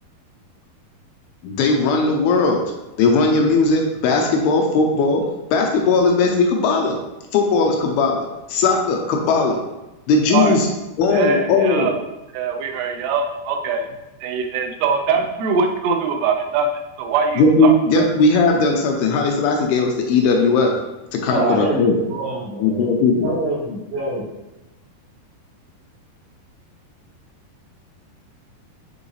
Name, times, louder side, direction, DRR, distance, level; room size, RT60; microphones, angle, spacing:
voice 1, 1.4-2.6 3.0-5.2 5.5-7.0 7.3-9.6 10.1-10.7 11.0-11.9 17.4-20.7 21.1-21.9 22.6-23.3, left 3 dB, 80° left, 2 dB, 2.6 m, -18 dB
voice 2, 11.1-11.9 12.3-13.9 14.2-16.7 17.0-18.0, right 5 dB, 85° right, 4 dB, 2.9 m, -22 dB
voice 3, 21.2-22.9 23.2-24.2, right 1 dB, 40° right, -9 dB, 2.9 m, -25 dB
7.4 x 5.1 x 3.3 m, 1.0 s
omnidirectional pair, 4.7 m